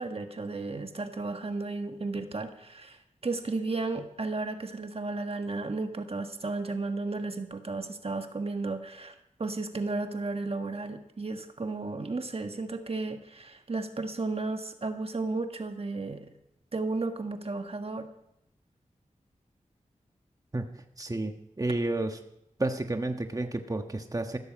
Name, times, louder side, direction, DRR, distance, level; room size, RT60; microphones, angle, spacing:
voice 1, 0.0-16.3 16.7-18.1, right 3 dB, 50° right, 6 dB, 1.5 m, -34 dB
voice 2, 20.5-22.2 22.6-24.4, right 2 dB, 25° right, 6 dB, 1.4 m, -31 dB
15.0 x 13.5 x 5.2 m, 0.80 s
cardioid pair, 45°, 13 cm